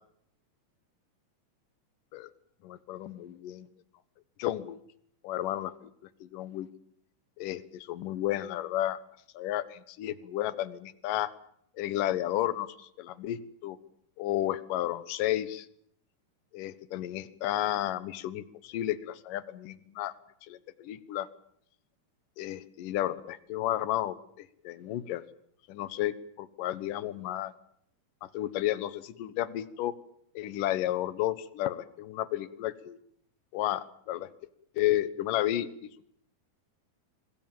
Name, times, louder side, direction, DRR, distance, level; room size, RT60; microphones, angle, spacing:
voice 1, 2.6-3.7 4.4-4.8 5.2-5.9 6.2-6.7 7.4-9.0 9.3-11.3 11.8-13.8 14.2-15.7 16.5-20.1 20.5-21.3 22.4-25.2 25.7-27.5 28.2-29.9 30.3-33.0 33.5-34.3 34.8-36.0, left 13 dB, 70° left, 16 dB, 2.7 m, -32 dB
25.5 x 22.0 x 7.4 m, 0.69 s
omnidirectional pair, 4.3 m